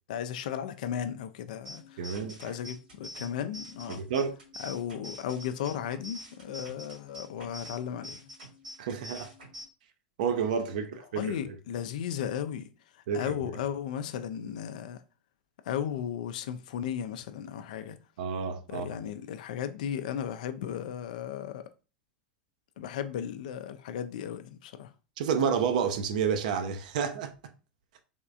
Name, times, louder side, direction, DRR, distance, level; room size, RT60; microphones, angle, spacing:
voice 1, 0.1-2.0 2.4-4.0 4.6-8.2 11.1-12.7 13.1-15.0 15.7-18.0 18.7-21.7 22.8-24.9, left 9 dB, 65° left, 0.4 m, -35 dB
sound 1, 1.6-9.6, equal, 80° right, 2.0 m, -46 dB
voice 2, 2.0-2.6 3.9-4.4 8.8-9.3 10.2-11.6 13.1-13.5 18.2-18.9 25.2-27.3, right 6 dB, 65° right, 0.5 m, -30 dB
3.5 x 3.1 x 2.5 m
figure-of-eight pair, 85°, 5 cm